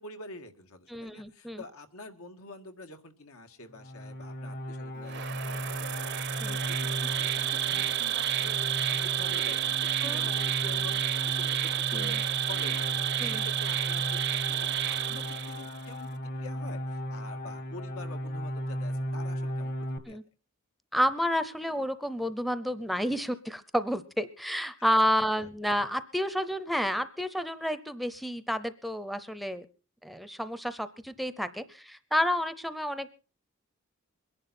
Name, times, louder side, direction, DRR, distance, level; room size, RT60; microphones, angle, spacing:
voice 1, 0.0-10.9 11.2-12.2 12.5-19.7 20.1-20.2 25.4-25.8, left 2 dB, 85° left, 6 dB, 1.9 m, -47 dB
voice 2, 0.9-1.6 6.4-6.6 10.0-10.3 11.9-12.1 13.2-13.4 20.1-20.2 20.9-29.7 30.0-33.1, equal, ahead, 13 dB, 0.6 m, -30 dB
sound 1, 3.7-20.0, equal, 45° left, 1.4 m, -36 dB
Insect, 5.1-15.8, right 12 dB, 55° right, 0.7 m, -30 dB
23.0 x 11.0 x 4.3 m, 0.35 s
head